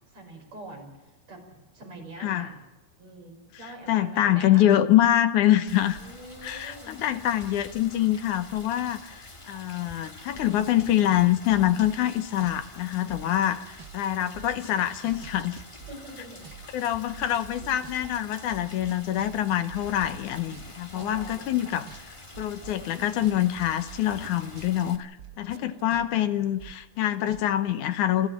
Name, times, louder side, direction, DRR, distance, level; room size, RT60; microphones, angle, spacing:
voice 1, 0.1-2.6 3.0-4.7 6.0-7.0 13.3-13.5 15.9-17.0 17.3-17.8 20.9-21.9 25.6-26.1, right 1 dB, 55° right, 1 dB, 6.8 m, -46 dB
voice 2, 3.6-6.0 6.4-15.6 16.7-21.9 22.4-25.1 25.4-28.3, left 12 dB, 75° left, 10 dB, 2.3 m, -25 dB
Rain, 5.7-25.0, left 1 dB, 20° left, 0.9 m, -47 dB
sound 1, 10.4-12.6 12.9-24.7 25.0-27.4 27.7-27.8, right 9 dB, 80° right, 0.9 m, -46 dB
28.0 x 14.0 x 7.3 m, 1.1 s
omnidirectional pair, 3.6 m